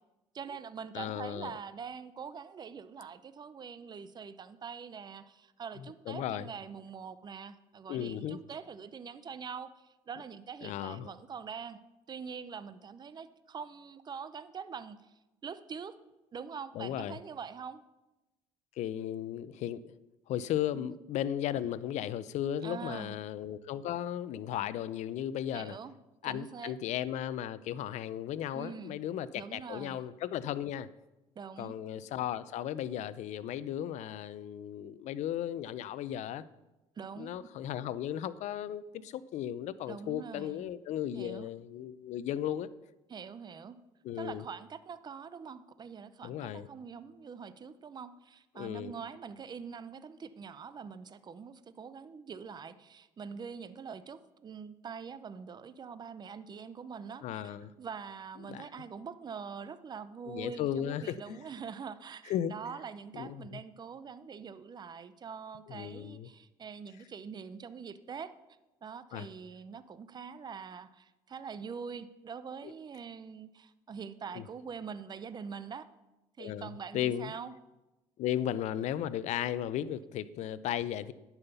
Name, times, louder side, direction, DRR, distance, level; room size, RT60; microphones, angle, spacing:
voice 1, 0.3-11.8 12.1-15.1 15.4-16.0 16.3-17.8 20.7-20.9 22.6-23.2 25.5-25.9 26.2-26.7 28.5-29.0 29.3-30.0 31.4-31.8 37.0-37.3 39.9-40.6 41.2-41.5 43.1-43.8 44.2-68.3 68.8-75.9 76.4-77.5, right 6 dB, 35° right, 14 dB, 0.6 m, -44 dB
voice 2, 0.9-1.5 5.8-6.5 7.9-8.4 10.6-11.1 16.7-17.2 18.8-19.9 20.3-25.8 26.2-30.9 31.6-36.4 37.2-42.7 44.0-44.4 46.2-46.7 48.5-48.9 57.2-57.7 58.4-58.7 60.3-61.4 62.3-62.5 63.1-63.6 65.7-66.3 69.1-69.3 74.3-74.5 76.4-77.3 78.2-81.1, left 11 dB, 65° left, 17 dB, 0.6 m, -35 dB
11.0 x 5.7 x 6.9 m, 1.0 s
supercardioid pair, 80°, 13 cm